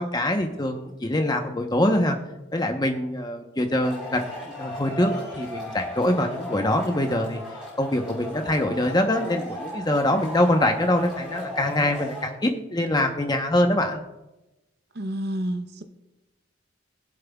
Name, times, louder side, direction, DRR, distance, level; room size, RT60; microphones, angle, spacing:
voice 1, 0.0-2.2 2.5-4.3 4.6-7.4 7.8-14.0, left 1 dB, 20° left, 0.8 m, -24 dB
Male speech man speaking / Shout / Clapping, 3.8-12.2, left 1 dB, 5° right, 4.0 m, -36 dB
voice 2, 14.9-15.8, right 1 dB, 50° right, 0.7 m, -29 dB
21.5 x 7.6 x 2.3 m
head